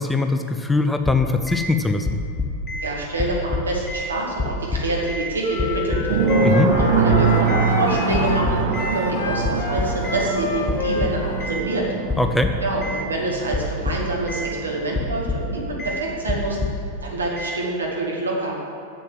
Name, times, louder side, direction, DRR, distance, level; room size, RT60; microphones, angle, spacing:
voice 1, 0.0-2.2 6.4-6.7 12.2-12.5, left 3 dB, 5° left, 6 dB, 0.6 m, -21 dB
sound 1, 1.0-1.7 2.0-2.9 3.2-4.1 4.4-5.3 5.6-6.5 6.8-7.7 8.1-9.0 9.4-10.3 10.7-11.6 12.1-13.0 13.5-14.5 14.9-15.5 15.8-16.0 16.3-16.9 17.4-17.6, left 3 dB, 25° left, 1.0 m, -27 dB
voice 2, 2.8-6.5 6.8-11.9 12.6-16.6 17.0-18.5, right 2 dB, 75° right, -3 dB, 2.2 m, -26 dB
sound 2, 5.4-11.9, left 4 dB, 50° left, 0.9 m, -28 dB
sound 3, 6.1-16.6, right 5 dB, 50° right, 1.2 m, -25 dB
7.5 x 7.4 x 7.5 m, 2.7 s
figure-of-eight pair, 90°, 0 cm